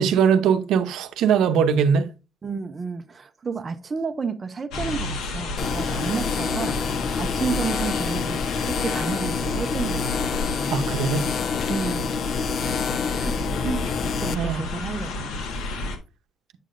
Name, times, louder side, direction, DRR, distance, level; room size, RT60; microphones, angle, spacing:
voice 1, 0.0-2.1 10.7-11.3 14.3-14.6, right 7 dB, 70° right, 0.7 m, -20 dB
voice 2, 2.4-6.8 7.2-10.3 10.6-11.0 11.7-12.9 13.1-13.4 13.6-15.3, right 5 dB, 25° right, 0.5 m, -31 dB
sound 1, 4.7-16.0, left 2 dB, 80° left, 1.5 m, -31 dB
sound 2, 5.6-14.4, left 6 dB, 35° left, 0.3 m, -27 dB
8.3 x 6.6 x 2.5 m
cardioid pair, 170°, 0 cm